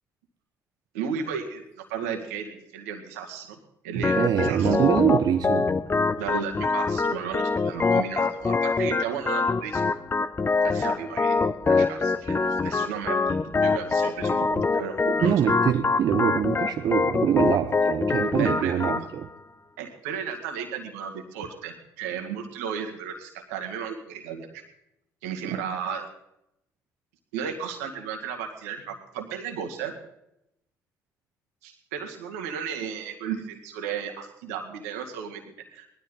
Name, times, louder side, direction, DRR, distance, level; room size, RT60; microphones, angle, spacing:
voice 1, 0.9-3.6 3.8-4.8 6.2-9.9 10.6-11.4 11.6-15.3 18.4-19.1 19.8-24.6 25.2-26.1 27.3-29.9 31.6-35.9, right 7 dB, 85° right, 3 dB, 2.1 m, -34 dB
voice 2, 3.9-5.7 14.6-14.7 15.2-19.3 25.5-25.6, right 9 dB, 55° right, 7 dB, 0.8 m, -24 dB
Organ, 4.0-19.0, left 4 dB, 30° left, 0.8 m, -25 dB
19.0 x 12.5 x 4.0 m, 0.80 s
hypercardioid pair, 55°, 8 cm